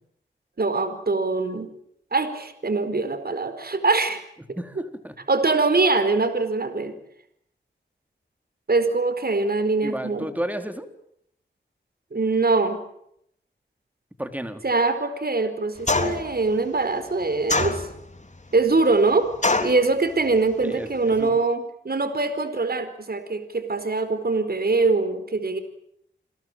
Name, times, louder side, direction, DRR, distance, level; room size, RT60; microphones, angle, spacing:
voice 1, 0.6-1.7 2.1-4.2 4.5-4.6 5.3-6.9 8.7-10.3 12.1-12.8 14.6-17.9 18.5-19.3 19.6-25.6, right 3 dB, 55° right, 10 dB, 4.5 m, -23 dB
voice 2, 4.6-5.1 9.8-10.9 14.2-14.6 20.6-21.4, right 1 dB, 10° right, 7 dB, 3.9 m, -32 dB
sound 1, 15.9-16.3 17.5-18.2 19.4-19.8, left 3 dB, 40° left, 3.6 m, -23 dB
29.0 x 21.5 x 9.1 m, 0.73 s
wide cardioid pair, 80°, 20 cm